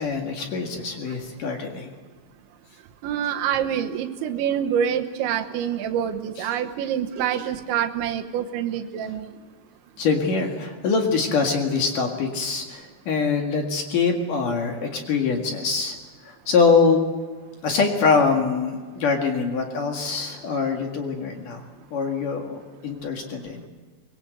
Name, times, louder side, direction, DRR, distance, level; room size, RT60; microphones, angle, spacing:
voice 1, 0.0-1.9 10.0-16.0 16.2-17.0 17.6-21.6 21.9-23.6, left 4 dB, 55° left, 2 dB, 3.0 m, -24 dB
voice 2, 3.0-9.3, right 9 dB, 80° right, 6 dB, 3.4 m, -26 dB
23.5 x 22.0 x 8.0 m, 1.4 s
omnidirectional pair, 5.4 m